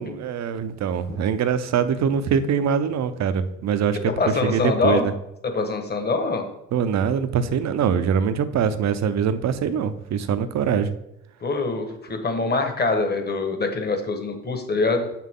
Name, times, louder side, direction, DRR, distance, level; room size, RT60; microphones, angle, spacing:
voice 1, 0.0-4.0 4.4-5.1 6.7-10.9, right 7 dB, 60° right, 12 dB, 0.7 m, -23 dB
voice 2, 4.2-5.1 5.4-6.4 11.4-15.1, left 3 dB, 35° left, 5 dB, 1.4 m, -24 dB
7.1 x 5.8 x 3.7 m, 0.84 s
cardioid pair, 90°, 30 cm